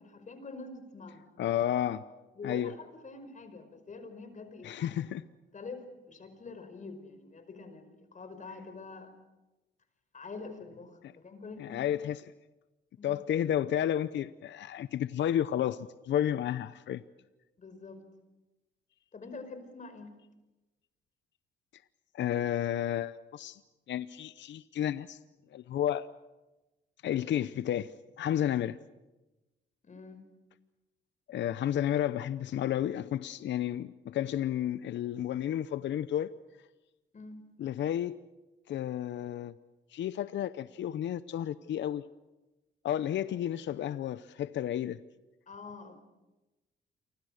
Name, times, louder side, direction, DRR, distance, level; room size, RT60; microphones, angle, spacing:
voice 1, 0.0-1.2 2.4-5.0 5.5-9.1 10.1-11.9 13.0-13.2 17.6-18.0 19.1-20.2 29.8-30.3 37.1-37.5 45.5-46.0, left 3 dB, 40° left, 5.2 m, -46 dB
voice 2, 1.4-2.0 2.4-2.7 4.6-5.2 11.6-12.3 13.0-17.0 22.1-23.6 23.9-25.2 25.5-26.1 27.0-27.9 28.2-28.8 31.3-36.3 37.6-38.2 38.7-39.5 39.9-42.0 42.8-45.0, left 11 dB, 65° left, 0.8 m, -31 dB
28.5 x 25.0 x 6.6 m
cardioid pair, 90°, 20 cm